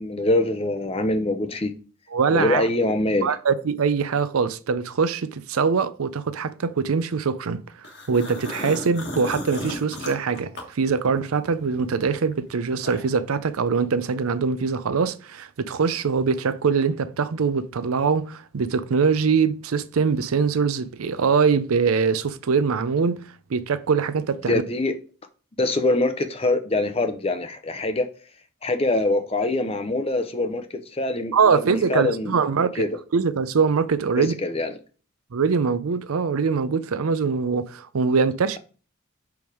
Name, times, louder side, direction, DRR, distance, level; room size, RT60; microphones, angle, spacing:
voice 1, 0.0-1.7 2.3-3.3 24.5-24.9 25.6-28.1 28.6-32.3 32.8-33.0 34.2-34.7, left 2 dB, 25° left, 0.6 m, -24 dB
voice 2, 2.1-2.7 3.2-7.6 8.1-23.2 23.5-24.6 31.3-32.8 33.1-34.4 35.3-38.6, right 5 dB, 80° right, 0.5 m, -23 dB
sound 1, 7.8-11.4 11.8-13.3, left 1 dB, 50° left, 1.4 m, -35 dB
5.3 x 4.7 x 4.7 m
head